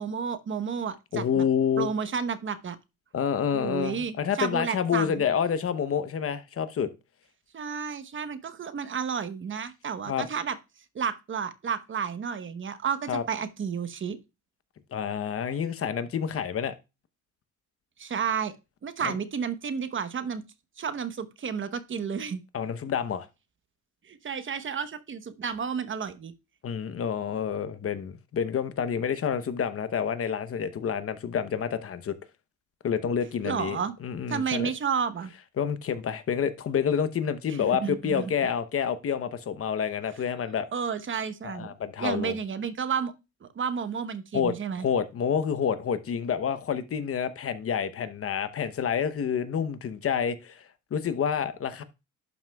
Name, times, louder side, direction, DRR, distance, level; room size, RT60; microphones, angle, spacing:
voice 1, 0.0-1.4 1.8-2.8 3.5-5.2 7.5-10.6 10.9-14.2 18.0-18.5 18.8-20.4 20.8-22.4 24.1-26.3 33.4-33.9 34.3-35.3 37.8-38.3 40.7-41.7 42.0-43.1 43.4-44.9, right 6 dB, 40° right, 0.9 m, -31 dB
voice 2, 1.1-1.9 3.1-6.9 10.1-10.3 13.1-13.2 14.9-16.7 19.0-19.2 22.5-23.3 26.6-32.1 32.8-34.7 35.6-40.7 41.4-42.4 44.3-51.8, left 7 dB, 50° left, 0.8 m, -28 dB
11.5 x 6.0 x 2.3 m
cardioid pair, 90°, 30 cm